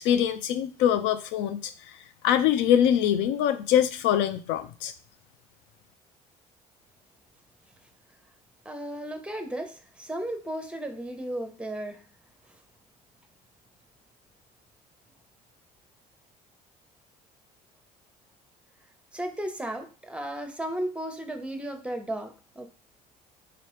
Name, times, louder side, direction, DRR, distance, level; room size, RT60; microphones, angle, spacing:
voice 1, 0.0-2.0 2.2-4.9, left 10 dB, 65° left, 10 dB, 0.4 m, -24 dB
voice 2, 8.6-12.0 19.1-22.7, right 1 dB, 5° right, 6 dB, 0.8 m, -34 dB
3.9 x 2.8 x 3.1 m, 0.36 s
hypercardioid pair, 60°, 20 cm